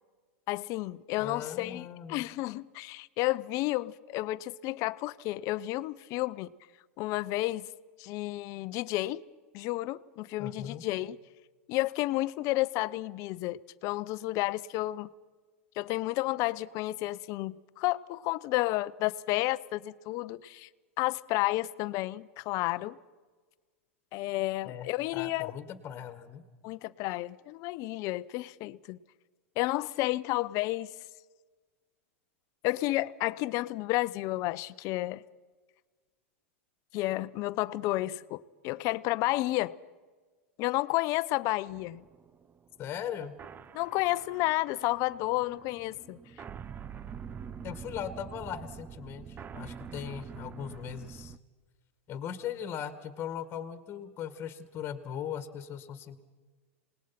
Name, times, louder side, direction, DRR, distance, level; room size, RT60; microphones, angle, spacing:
voice 1, 0.5-6.5 7.0-7.7 8.0-9.2 9.5-11.2 11.7-15.1 15.8-20.7 21.0-23.0 24.1-25.5 26.6-29.0 29.6-30.9 32.6-35.2 36.9-39.7 40.6-42.0 43.7-46.2, left 18 dB, 45° left, 0.7 m, -31 dB
voice 2, 1.2-2.3 10.4-10.8 24.6-26.4 42.8-43.3 47.6-51.4 52.1-56.2, left 9 dB, 30° left, 1.8 m, -39 dB
sound 1, 41.7-51.4, right 7 dB, 25° right, 0.7 m, -45 dB
27.5 x 19.5 x 5.9 m
hypercardioid pair, 105°, 7 cm